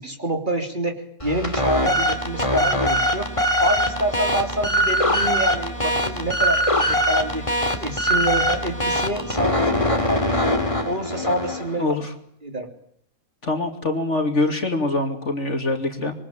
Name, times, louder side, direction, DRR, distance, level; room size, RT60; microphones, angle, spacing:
voice 1, 0.0-3.3 3.6-7.4 7.8-10.6 10.8-11.9 12.4-12.7, right 1 dB, 35° right, 5 dB, 3.7 m, -27 dB
sound 1, 1.2-11.8, equal, 20° left, 3.0 m, -22 dB
voice 2, 11.8-12.1 13.4-16.1, left 2 dB, 50° left, 6 dB, 3.2 m, -24 dB
26.0 x 24.0 x 9.1 m, 0.66 s
omnidirectional pair, 1.5 m